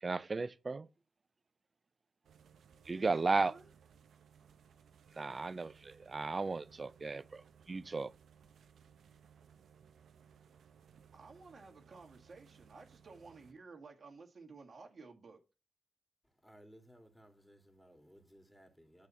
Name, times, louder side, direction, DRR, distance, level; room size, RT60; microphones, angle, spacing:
voice 1, 0.0-0.9 2.9-3.5 5.2-5.7 5.9-8.1, right 3 dB, 45° right, 0.5 m, -35 dB
sound 1, 2.2-13.5, right 7 dB, 85° right, 0.9 m, -63 dB
voice 2, 2.9-3.7 11.1-15.4, right 4 dB, 60° right, 1.9 m, -54 dB
voice 3, 16.2-19.1, equal, 5° left, 2.6 m, -60 dB
8.6 x 4.2 x 5.7 m
cardioid pair, 50°, 0 cm